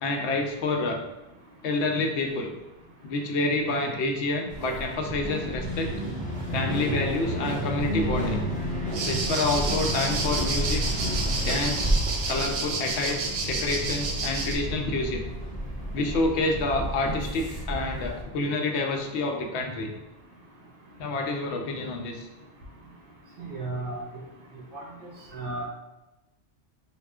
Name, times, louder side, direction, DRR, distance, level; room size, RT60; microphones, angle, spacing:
voice 1, 0.0-1.0 1.6-2.5 3.0-5.9 6.5-8.4 9.1-10.8 11.4-12.0 12.3-13.2 13.5-15.3 15.9-19.9 21.0-22.2, left 2 dB, 75° left, 3 dB, 0.8 m, -28 dB
city ambience - loud band playing in pub, 4.5-18.2, equal, 10° left, 0.5 m, -31 dB
sound 1, 8.9-14.6, right 3 dB, 80° right, 0.9 m, -31 dB
voice 2, 23.4-24.2 24.7-25.7, right 2 dB, 50° right, -3 dB, 0.9 m, -35 dB
3.1 x 2.4 x 3.5 m, 0.99 s
omnidirectional pair, 1.2 m